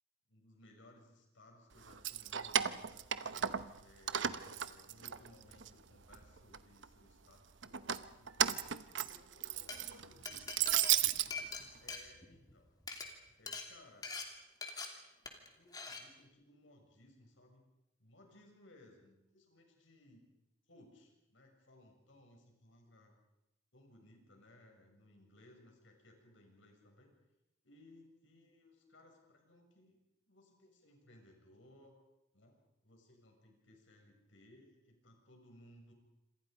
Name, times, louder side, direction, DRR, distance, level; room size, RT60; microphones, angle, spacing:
voice 1, 0.3-3.1 3.8-8.5 9.0-10.7 11.8-12.7 13.4-14.1 14.7-14.8 15.0-17.7 18.0-20.2 20.7-23.1 23.7-27.1 27.6-32.0 32.3-32.6 32.8-35.9, left 1 dB, 85° left, 2 dB, 7.0 m, -62 dB
Keys jangling, 1.9-3.8 4.1-5.7 6.1-6.9 7.6-11.3, right 10 dB, 75° right, 0.9 m, -34 dB
Glass, 9.5-9.8 10.3-12.5 12.8-13.1 13.5-13.7 14.0-14.3 14.6-14.9 15.3-15.5 15.7-16.0, left 4 dB, 20° left, 2.9 m, -43 dB
27.0 x 27.0 x 5.3 m, 0.88 s
head